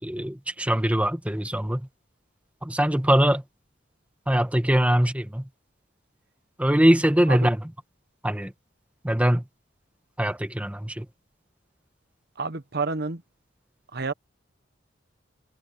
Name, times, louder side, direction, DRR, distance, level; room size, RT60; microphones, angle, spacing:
voice 1, 0.0-1.8 2.6-3.4 4.3-5.4 6.6-7.6 8.2-8.5 9.0-9.4 10.2-11.0, equal, 5° right, 1.4 m, -22 dB
voice 2, 12.4-13.2 13.9-14.1, right 4 dB, 60° right, 1.2 m, -29 dB
head